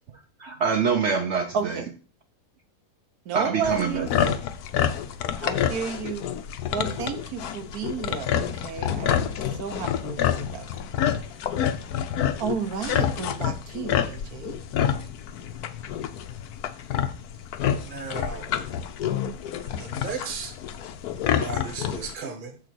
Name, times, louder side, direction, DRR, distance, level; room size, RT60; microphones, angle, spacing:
voice 1, 0.4-1.8 3.3-4.4, right 5 dB, 60° right, 0.9 m, -25 dB
voice 2, 1.5-1.8 3.2-4.1 5.4-6.3 6.7-10.7 12.4-14.6, right 6 dB, 75° right, 1.4 m, -32 dB
sound 1, 3.6-22.1, left 9 dB, 80° left, 1.2 m, -28 dB
voice 3, 17.8-18.5 19.6-20.6 21.4-22.6, right 5 dB, 35° right, 1.2 m, -35 dB
7.4 x 3.9 x 6.1 m
omnidirectional pair, 1.6 m